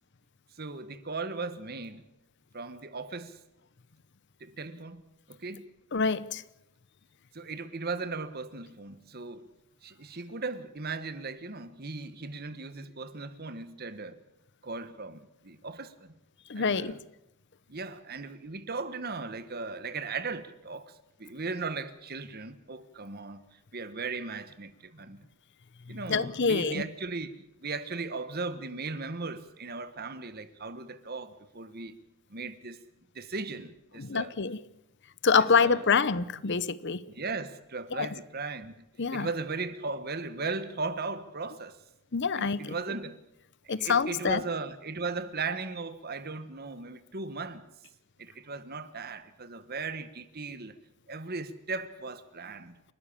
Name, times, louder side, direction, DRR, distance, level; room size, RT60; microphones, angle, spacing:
voice 1, 0.6-2.1 2.5-3.4 4.4-5.0 5.3-5.7 7.3-9.5 9.8-14.2 14.6-16.1 16.5-17.0 17.7-25.3 25.9-32.0 32.3-32.9 33.1-34.3 35.4-35.8 37.1-38.9 39.1-41.8 42.4-43.2 43.6-47.6 48.2-50.8 51.1-52.7, right 4 dB, 45° right, 1.4 m, -37 dB
voice 2, 5.9-6.4 16.5-17.0 26.1-26.8 34.0-34.6 35.2-37.0 37.9-38.1 39.0-39.3 42.1-42.7 43.7-44.4, left 5 dB, 50° left, 0.8 m, -26 dB
29.0 x 12.5 x 8.6 m
head